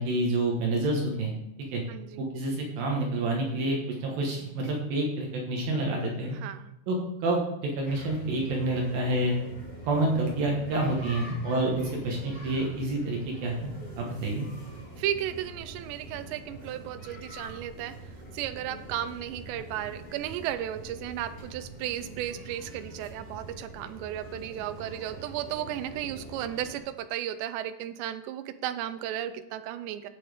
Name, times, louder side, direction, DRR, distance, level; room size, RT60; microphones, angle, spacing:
voice 1, 0.0-1.3 1.7-1.8 2.2-6.4 6.9-9.4 9.8-14.5, right 2 dB, 65° right, 0 dB, 2.9 m, -28 dB
voice 2, 1.9-2.3 6.1-6.7 11.0-11.1 15.0-18.0 18.3-30.1, right 11 dB, 90° right, 11 dB, 2.8 m, -34 dB
sound 1, 7.8-26.8, right 1 dB, 25° left, 2.3 m, -44 dB
10.0 x 8.6 x 3.5 m, 0.88 s
omnidirectional pair, 4.9 m